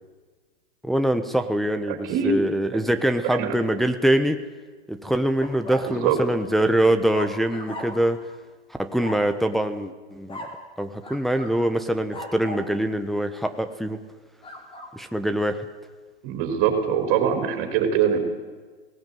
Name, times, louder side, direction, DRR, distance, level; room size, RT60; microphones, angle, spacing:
voice 1, 0.8-4.4 4.9-8.2 8.8-10.4 10.8-14.0 14.9-15.6, right 1 dB, ahead, 7 dB, 1.0 m, -24 dB
voice 2, 1.9-2.4 2.7-2.8 3.2-3.5 5.8-6.2 16.2-18.2, right 7 dB, 45° right, 5 dB, 4.3 m, -23 dB
sound 1, 5.4-5.9 7.1-8.2 9.0-9.3 10.3-10.6 11.0-11.6 12.1-12.7 14.4-14.9, left 1 dB, 15° left, 3.5 m, -37 dB
18.5 x 17.0 x 9.3 m, 1.4 s
hypercardioid pair, 125°, 32 cm